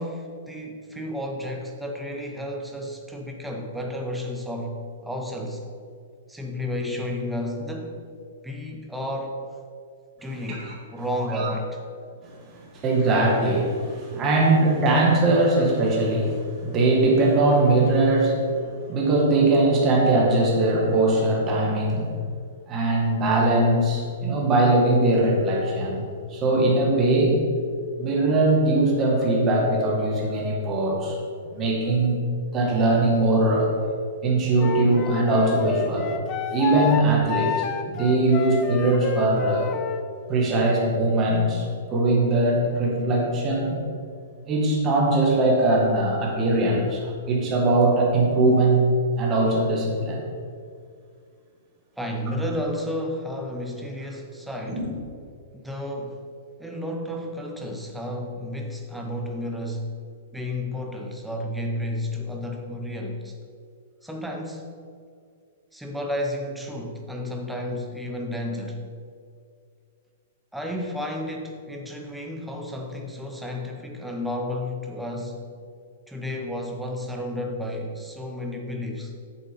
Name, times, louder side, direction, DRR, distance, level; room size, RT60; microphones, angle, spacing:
voice 1, 0.0-5.6 6.3-8.0 8.4-9.4 10.2-11.8 52.0-54.9 55.5-56.2 56.6-59.9 60.3-63.4 64.0-64.7 65.7-68.8 70.5-75.4 76.1-79.1, left 1 dB, ahead, 0 dB, 0.8 m, -32 dB
voice 2, 12.7-18.5 18.9-22.1 22.7-26.0 26.3-27.4 28.0-31.2 31.5-32.2 32.5-33.7 34.2-36.1 36.5-39.7 40.3-43.8 44.5-48.9 49.2-50.2 54.7-54.9, right 2 dB, 20° right, -2 dB, 1.7 m, -21 dB
Wind instrument woodwind instrument, 34.6-40.0, left 7 dB, 20° left, 0.4 m, -30 dB
8.1 x 7.1 x 5.4 m, 2.2 s
hypercardioid pair, 170°, 0 cm